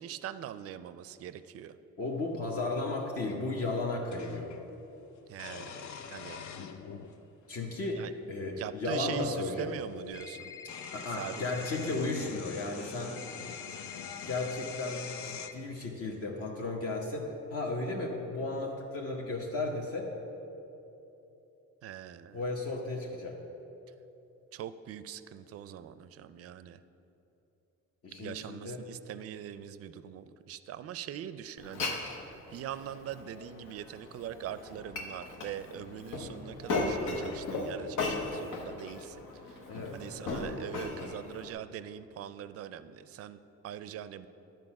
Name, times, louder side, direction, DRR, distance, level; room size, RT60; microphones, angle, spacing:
voice 1, 0.0-1.8 5.3-6.4 8.0-8.1 8.6-10.5 11.0-11.5 21.8-22.4 24.5-26.8 28.2-39.6 39.9-44.3, right 10 dB, 50° right, 14 dB, 0.4 m, -42 dB
voice 2, 2.0-4.5 7.5-9.7 10.9-13.2 14.2-20.1 22.3-23.4 28.0-28.8 39.7-40.0, left 2 dB, 50° left, -1 dB, 1.0 m, -34 dB
sound 1, 2.4-2.5 4.1-4.6 5.3-7.2 8.1-8.2 9.7-9.8 10.1-15.5, left 7 dB, 65° left, 0.6 m, -44 dB
sound 2, 10.1-11.9 13.2-15.5, left 7 dB, 10° left, 0.4 m, -46 dB
Glass, 31.6-41.5, left 3 dB, 85° left, 1.0 m, -37 dB
11.0 x 4.5 x 5.9 m, 3.0 s
cardioid pair, 90°, 30 cm